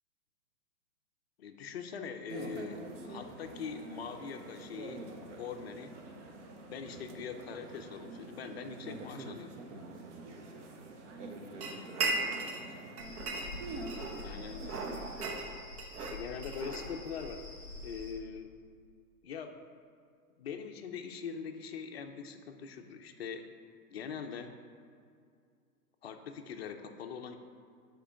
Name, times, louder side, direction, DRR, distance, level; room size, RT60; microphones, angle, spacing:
voice 1, 1.4-5.1 5.4-6.0 6.7-9.5 14.2-14.8 16.0-17.4 17.8-18.5 19.2-19.6 20.4-23.5 23.9-24.6 26.0-27.4, left 6 dB, 45° left, 6 dB, 0.5 m, -42 dB
sound 1, 2.3-15.4, right 2 dB, 50° right, 0.8 m, -46 dB
sound 2, 11.6-12.7 13.0-14.3 14.7-17.3, right 3 dB, 75° right, 1.1 m, -37 dB
sound 3, 13.0-18.1, left 3 dB, ahead, 1.4 m, -47 dB
5.1 x 4.4 x 5.6 m, 2.3 s
hypercardioid pair, 145°, 47 cm